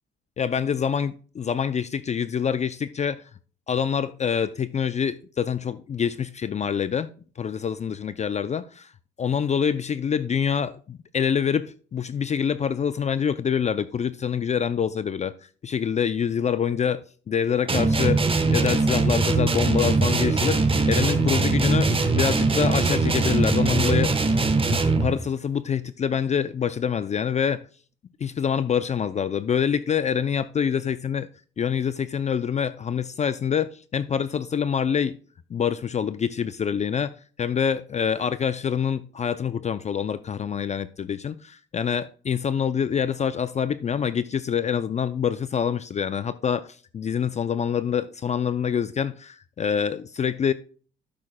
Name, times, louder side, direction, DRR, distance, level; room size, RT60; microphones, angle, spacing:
voice 1, 0.4-3.2 3.7-7.1 7.4-8.9 9.2-15.3 15.6-18.2 18.5-24.4 24.7-27.6 28.2-31.3 31.6-35.2 35.5-50.5, left 7 dB, 35° left, 0.4 m, -26 dB
sound 1, 17.7-25.2, right 3 dB, 25° right, 1.1 m, -21 dB
11.0 x 8.4 x 2.2 m
cardioid pair, 90°, 20 cm